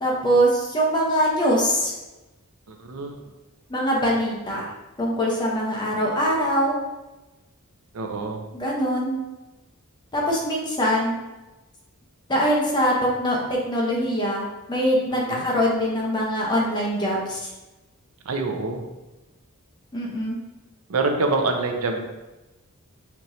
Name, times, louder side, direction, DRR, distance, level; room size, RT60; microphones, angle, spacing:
voice 1, 0.0-1.9 3.7-4.6 5.0-6.8 8.5-9.2 10.1-11.2 12.3-14.4 14.7-17.4 19.9-20.4, equal, 20° left, -3 dB, 0.8 m, -23 dB
voice 2, 2.7-3.2 7.9-8.4 15.3-15.4 18.3-18.9 20.9-22.0, right 3 dB, 75° right, 3 dB, 0.5 m, -25 dB
4.4 x 3.0 x 2.7 m, 1.1 s
head